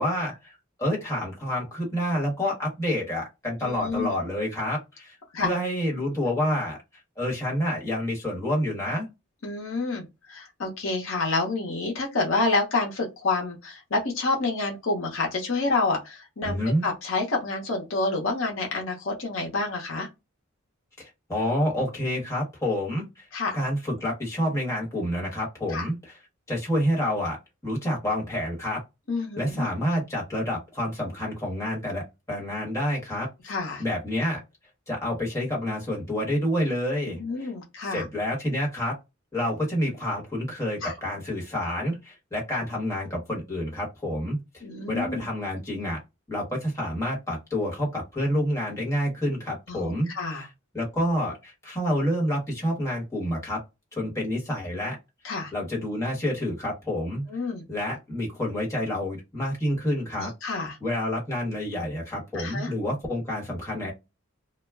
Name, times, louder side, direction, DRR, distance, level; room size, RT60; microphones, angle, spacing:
voice 1, 0.0-6.8 7.2-9.1 16.4-16.8 21.0-23.3 23.5-25.9 26.5-27.4 27.6-28.8 29.4-32.0 32.3-34.4 34.9-37.2 37.9-38.9 39.3-46.0 46.3-50.1 50.7-53.6 53.9-55.0 55.5-57.2 57.7-60.3 60.8-63.9, equal, 15° left, 1.1 m, -28 dB
voice 2, 3.6-4.1 5.3-5.5 9.4-20.1 23.3-23.6 25.7-25.9 29.1-29.7 33.4-33.8 37.1-38.0 40.8-40.9 44.6-45.2 49.7-50.5 55.2-55.5 57.3-57.6 60.2-60.8 62.3-62.7, left 3 dB, 65° left, 0.8 m, -28 dB
2.3 x 2.1 x 3.3 m
head